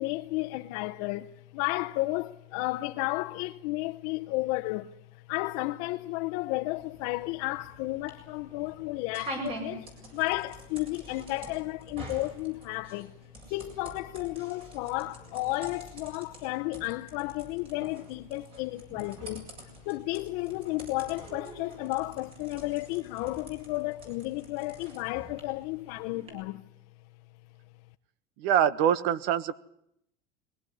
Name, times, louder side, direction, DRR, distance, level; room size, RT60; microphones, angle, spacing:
voice 1, 0.0-13.1 13.5-19.5 19.9-26.6, left 20 dB, 55° left, 0.9 m, -33 dB
sound 1, 6.8-26.3, right 2 dB, 30° right, 7.7 m, -46 dB
voice 2, 28.4-29.5, right 9 dB, 55° right, 1.3 m, -24 dB
22.0 x 18.5 x 9.9 m
cardioid pair, 170°, 19 cm